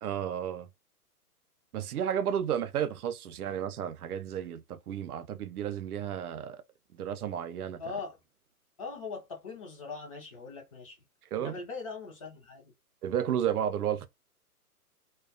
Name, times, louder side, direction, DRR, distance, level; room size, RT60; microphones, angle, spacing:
voice 1, 0.0-0.7 1.7-6.6 6.9-7.8 11.3-11.6 13.0-14.1, right 9 dB, 70° right, 0.5 m, -32 dB
voice 2, 7.8-8.2 8.8-11.0 11.3-12.7, left 4 dB, 25° left, 0.4 m, -41 dB
2.3 x 2.2 x 2.4 m
hypercardioid pair, 125°, 46 cm